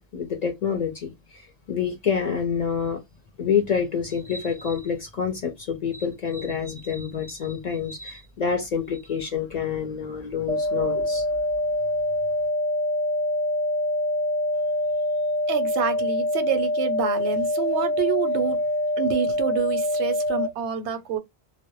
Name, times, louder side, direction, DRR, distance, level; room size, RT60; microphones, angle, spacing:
voice 1, 0.0-3.0 3.4-11.3, left 6 dB, 55° left, 0.5 m, -27 dB
sound 1, 10.5-20.5, left 2 dB, 35° right, 0.4 m, -25 dB
voice 2, 15.5-18.6 19.0-21.2, right 8 dB, 90° right, 0.9 m, -27 dB
2.0 x 2.0 x 2.9 m
omnidirectional pair, 1.1 m